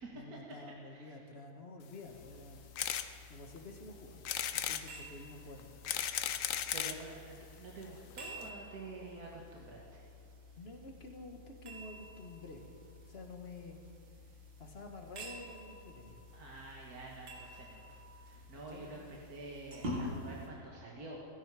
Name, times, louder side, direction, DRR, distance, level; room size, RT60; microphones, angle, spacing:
voice 1, 0.1-2.6 3.3-4.2 4.5-5.8 10.6-12.6 13.1-13.8 14.6-16.2 18.5-19.0, left 2 dB, 35° left, 3 dB, 1.6 m, -50 dB
voice 2, 0.9-1.2 6.7-10.0 16.3-21.3, right 2 dB, 55° right, -3 dB, 2.0 m, -48 dB
sound 1, 2.0-20.5, left 1 dB, 85° right, 2.8 m, -49 dB
sound 2, 2.8-3.1 3.6-3.7 4.2-4.8 5.6-7.0 7.8-7.9 8.1-8.2 8.4-8.5, left 9 dB, 60° left, 0.9 m, -35 dB
16.5 x 16.0 x 4.9 m, 2.3 s
omnidirectional pair, 1.9 m